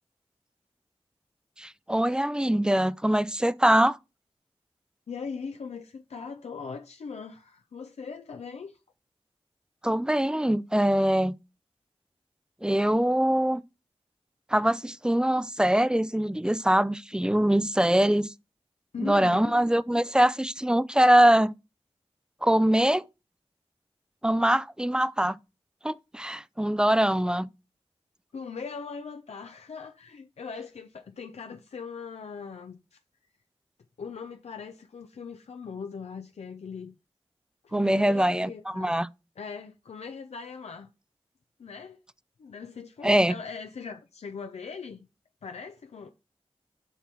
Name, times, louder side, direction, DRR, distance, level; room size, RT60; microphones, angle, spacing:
voice 1, 1.6-4.0 9.8-11.4 12.6-13.6 14.5-18.3 19.0-21.5 22.4-23.0 24.2-25.4 25.8-27.5 37.7-39.1 43.0-43.3, right 1 dB, 5° right, 0.4 m, -23 dB
voice 2, 5.1-8.8 18.9-19.6 28.3-33.0 34.0-36.9 37.6-39.0 39.4-40.9 41.6-42.0 42.4-45.1 45.4-46.1, left 5 dB, 90° left, 0.6 m, -40 dB
7.1 x 3.5 x 6.0 m
cardioid pair, 45°, 11 cm